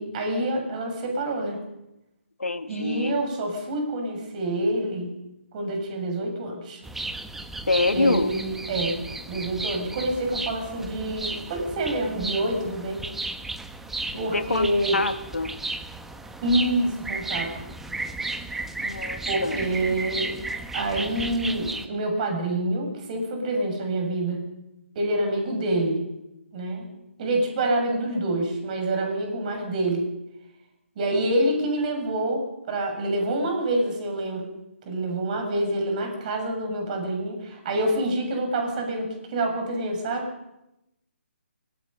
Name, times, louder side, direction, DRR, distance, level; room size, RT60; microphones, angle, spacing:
voice 1, 0.0-1.6 2.7-5.2 5.5-6.8 7.9-9.0 9.3-13.1 14.2-15.0 16.4-17.5 19.3-20.3 20.7-24.5 25.0-26.0 26.5-26.9 27.2-30.0 31.0-34.5 34.9-40.3, right 1 dB, 35° right, 3 dB, 7.0 m, -27 dB
voice 2, 2.4-3.2 7.7-8.3 14.3-15.6 18.8-19.6, left 3 dB, 90° left, 9 dB, 1.8 m, -26 dB
sound 1, 6.8-21.9, right 2 dB, 5° right, 1.0 m, -34 dB
24.0 x 20.5 x 5.5 m, 0.90 s
hypercardioid pair, 150°, 7 cm